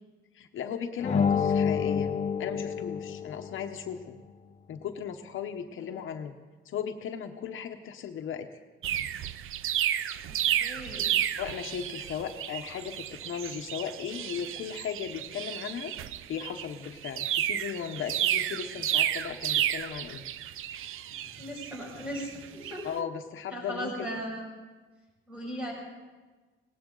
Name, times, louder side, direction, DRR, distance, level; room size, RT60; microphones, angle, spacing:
voice 1, 0.3-4.2 4.7-6.4 6.6-8.5 11.4-15.9 16.3-20.2 22.8-24.1, left 8 dB, 75° left, 6 dB, 0.9 m, -37 dB
sound 1, 1.0-3.7, left 6 dB, 35° left, 0.8 m, -28 dB
sound 2, 8.8-22.8, right 11 dB, 85° right, 0.5 m, -32 dB
voice 2, 10.3-11.1 21.1-22.9 23.5-24.4 25.3-25.7, equal, 5° right, -3 dB, 6.1 m, -38 dB
19.0 x 18.5 x 3.9 m, 1.3 s
wide cardioid pair, 155°, 21 cm